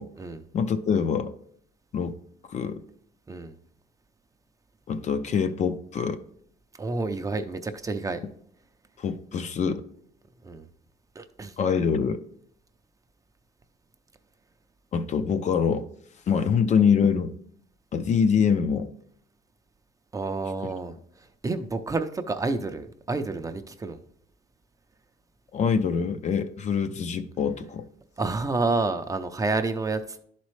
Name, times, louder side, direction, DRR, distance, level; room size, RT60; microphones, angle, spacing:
voice 1, 0.5-1.3 1.9-2.2 2.5-2.8 4.9-6.2 9.0-9.8 11.6-12.2 14.9-15.9 16.3-17.3 17.9-18.9 25.5-27.9, left 6 dB, 45° left, 9 dB, 0.5 m, -24 dB
voice 2, 6.8-8.2 10.4-10.7 11.2-11.5 20.1-21.0 21.4-24.0 28.2-30.2, right 3 dB, 20° right, 8 dB, 0.5 m, -29 dB
11.0 x 4.2 x 3.2 m, 0.67 s
cardioid pair, 110°, 17 cm